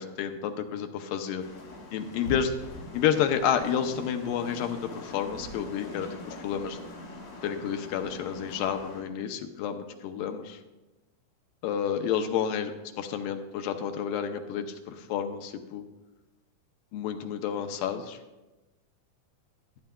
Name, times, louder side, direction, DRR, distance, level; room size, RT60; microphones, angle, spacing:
voice 1, 0.0-1.4 1.9-2.5 2.9-6.8 7.4-10.6 11.6-12.7 13.0-14.7 15.1-15.8 16.9-18.2, left 8 dB, 80° left, 7 dB, 2.1 m, -30 dB
sound 1, 1.4-9.0, left 1 dB, 60° left, 3.1 m, -42 dB
15.0 x 9.6 x 2.2 m, 1.1 s
omnidirectional pair, 4.3 m